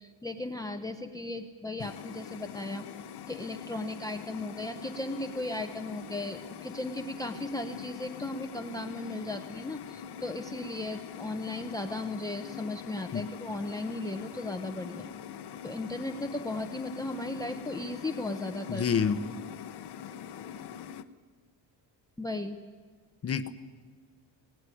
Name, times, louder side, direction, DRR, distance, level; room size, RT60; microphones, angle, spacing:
voice 1, 0.0-2.9 3.3-15.1 15.6-18.8 22.2-22.6, left 2 dB, 10° left, 7 dB, 0.8 m, -36 dB
sound 1, 1.8-21.0, left 8 dB, 55° left, 1.0 m, -43 dB
voice 2, 18.7-19.2 23.2-23.5, left 7 dB, 30° left, 11 dB, 0.9 m, -27 dB
20.0 x 19.0 x 10.0 m, 1.5 s
cardioid pair, 175°, 46 cm